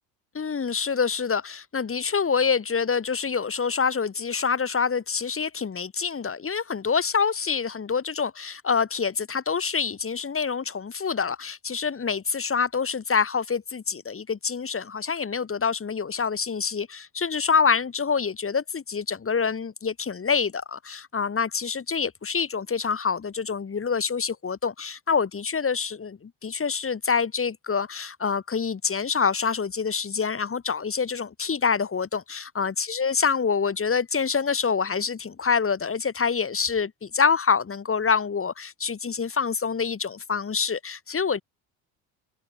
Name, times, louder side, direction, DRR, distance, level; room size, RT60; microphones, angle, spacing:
voice 1, 0.3-41.4, left 6 dB, 30° left, 3.1 m, -26 dB
supercardioid pair, 80°, 46 cm